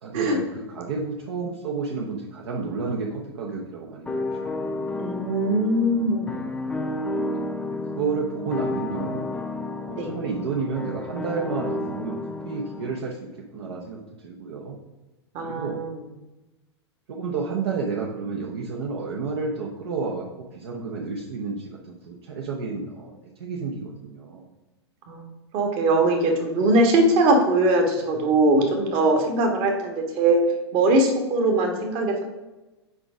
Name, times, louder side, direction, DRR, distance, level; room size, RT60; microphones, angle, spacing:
voice 1, 0.0-4.9 7.2-9.3 9.9-12.2 12.4-14.8 15.4-15.8 17.1-24.4, right 4 dB, 60° right, -2 dB, 0.9 m, -31 dB
sound 1, 4.1-13.0, left 2 dB, 5° left, 0.5 m, -31 dB
voice 2, 5.0-6.5 9.9-10.1 15.3-16.0 25.1-25.2 25.5-30.4 30.7-32.2, right 2 dB, 40° right, 3 dB, 1.4 m, -21 dB
4.9 x 4.9 x 4.9 m, 1.1 s
figure-of-eight pair, 95°, 14 cm